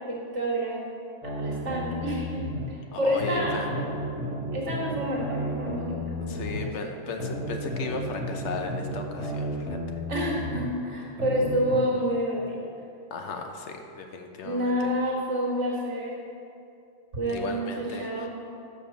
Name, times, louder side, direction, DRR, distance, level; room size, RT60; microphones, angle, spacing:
voice 1, 0.1-0.8 1.2-3.8 4.5-6.7 10.1-12.7 14.4-16.2 17.1-18.3, equal, 70° right, -4 dB, 1.8 m, -29 dB
sound 1, 1.2-2.7 3.2-6.7 7.2-10.7 11.2-11.8, equal, 5° right, 1.3 m, -33 dB
voice 2, 2.9-3.7 6.2-10.0 13.1-14.7 17.3-18.3, left 3 dB, 70° left, 4 dB, 1.0 m, -35 dB
6.7 x 5.0 x 5.9 m, 2.5 s
omnidirectional pair, 1.3 m